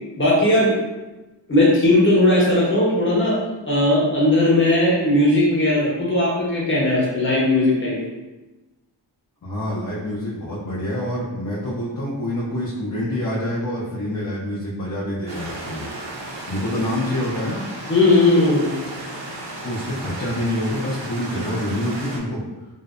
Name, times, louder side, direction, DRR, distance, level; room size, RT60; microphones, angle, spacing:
voice 1, 0.2-0.7 1.5-3.4 3.7-8.0 17.9-18.7, left 1 dB, 25° left, -6 dB, 0.9 m, -17 dB
voice 2, 9.4-15.9 16.5-17.6 19.6-22.4, left 1 dB, 45° left, -6 dB, 0.5 m, -26 dB
sound 1, 15.3-22.2, right 1 dB, 75° right, 0.6 m, -34 dB
2.6 x 2.0 x 2.4 m, 1.1 s
wide cardioid pair, 65°, 45 cm